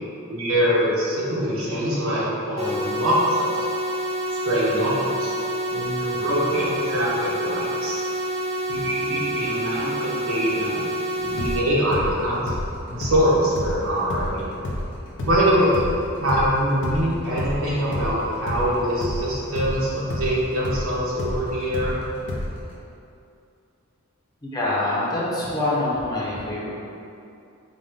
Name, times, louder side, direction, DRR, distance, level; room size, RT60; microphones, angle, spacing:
voice 1, 0.3-3.6 4.3-5.3 5.7-8.0 8.7-10.8 11.2-12.5 12.9-14.5 15.2-15.9 16.2-22.0, equal, 75° right, -7 dB, 1.1 m, -23 dB
sound 1, 2.6-11.6, right 1 dB, 30° right, 0.8 m, -28 dB
sound 2, 11.2-18.1 18.5-22.7, left 1 dB, 55° left, 0.6 m, -30 dB
voice 2, 24.4-26.7, left 2 dB, 20° left, -7 dB, 0.8 m, -25 dB
5.3 x 2.4 x 3.7 m, 2.6 s
head